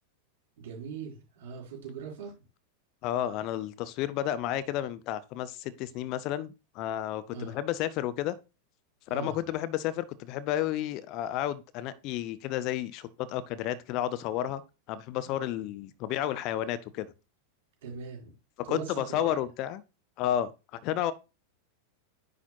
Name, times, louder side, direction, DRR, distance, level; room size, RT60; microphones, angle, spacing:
voice 1, 0.6-2.3 7.3-7.6 9.1-9.4 15.2-15.3 17.8-18.3 18.6-19.4, right 5 dB, 55° right, 3.8 m, -40 dB
voice 2, 3.0-8.4 9.1-14.6 14.9-17.1 18.7-19.8 20.2-21.1, left 12 dB, 40° left, 0.6 m, -31 dB
9.9 x 4.0 x 3.0 m
figure-of-eight pair, 90°, 0 cm